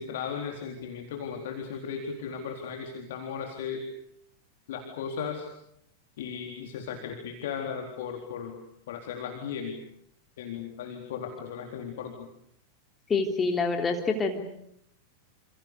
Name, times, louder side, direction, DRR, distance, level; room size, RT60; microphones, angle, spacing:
voice 1, 0.0-3.8 4.7-5.5 6.2-8.6 8.9-9.8 10.4-12.3, left 7 dB, 55° left, 3 dB, 4.0 m, -36 dB
voice 2, 13.1-14.5, left 4 dB, 20° left, 3 dB, 3.4 m, -26 dB
29.5 x 28.5 x 6.8 m, 0.73 s
figure-of-eight pair, 90°, 0 cm